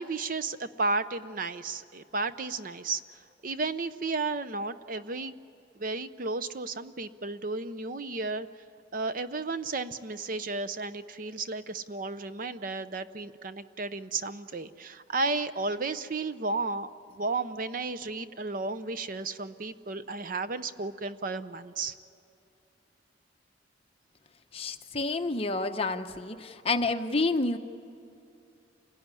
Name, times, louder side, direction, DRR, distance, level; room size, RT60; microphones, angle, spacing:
voice 1, 0.0-5.3 5.8-8.5 8.9-16.9 17.1-22.0, right 3 dB, 45° right, 12 dB, 0.6 m, -33 dB
voice 2, 24.5-27.6, left 3 dB, 30° left, 6 dB, 0.9 m, -29 dB
27.5 x 18.0 x 9.8 m, 2.6 s
head